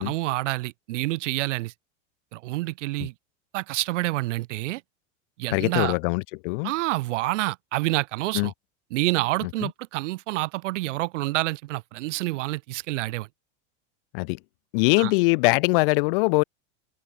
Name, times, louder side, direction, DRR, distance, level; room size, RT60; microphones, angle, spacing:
voice 1, 0.0-1.7 2.3-3.1 3.5-4.8 5.4-5.9 6.6-8.5 8.9-13.3 15.0-15.1, right 19 dB, 75° right, 1.2 m, -28 dB
voice 2, 5.5-6.7 8.3-8.5 9.4-9.7 14.1-14.4 14.7-16.4, left 29 dB, 45° left, 1.2 m, -22 dB
supercardioid pair, 180°, 37 cm